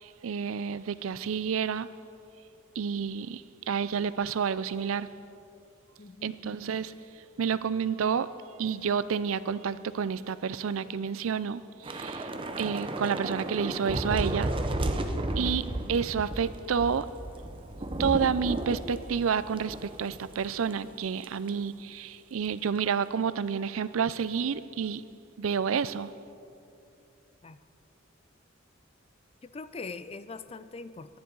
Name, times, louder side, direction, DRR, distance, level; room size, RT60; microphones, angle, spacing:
voice 1, 0.0-1.9 2.8-5.1 6.2-6.9 7.4-8.3 8.6-12.3 12.6-14.5 15.4-17.1 18.0-25.0 25.4-26.1, right 6 dB, 90° right, 15 dB, 0.4 m, -29 dB
voice 2, 6.0-6.4 12.3-12.8 15.0-15.6 27.4-27.6 29.4-31.2, left 4 dB, 30° left, 13 dB, 0.4 m, -43 dB
Thunder / Rain, 11.8-20.4 20.7-20.9 21.2-21.5, right 1 dB, 25° right, 0.6 m, -33 dB
22.5 x 10.5 x 3.9 m, 2.7 s
head